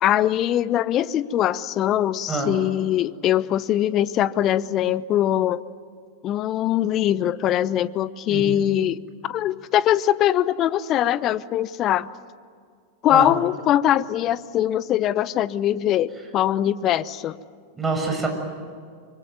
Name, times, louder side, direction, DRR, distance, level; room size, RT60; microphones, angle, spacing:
voice 1, 0.0-5.6 6.2-12.1 13.0-17.3, left 12 dB, 35° left, 18 dB, 0.9 m, -22 dB
voice 2, 8.3-8.7 13.1-13.3 17.8-18.3, right 3 dB, 10° right, 3 dB, 6.9 m, -26 dB
25.0 x 25.0 x 9.3 m, 2.1 s
figure-of-eight pair, 90°, 0 cm